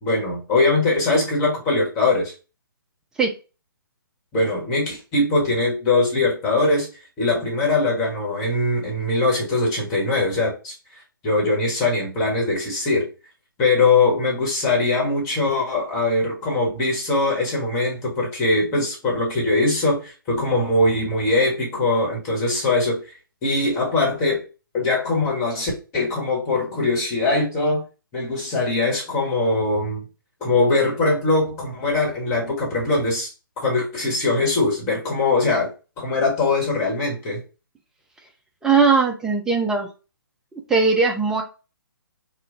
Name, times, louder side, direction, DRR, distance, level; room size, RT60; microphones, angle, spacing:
voice 1, 0.0-2.3 4.3-6.9 7.2-13.1 13.6-23.0 23.4-24.4 24.7-27.8 28.1-30.0 30.4-33.3 33.6-35.7 36.0-37.4, left 2 dB, 20° left, 1.3 m, -21 dB
voice 2, 38.6-39.9 40.5-41.4, right 4 dB, 5° right, 0.4 m, -19 dB
3.0 x 2.2 x 3.8 m
figure-of-eight pair, 140°, 12 cm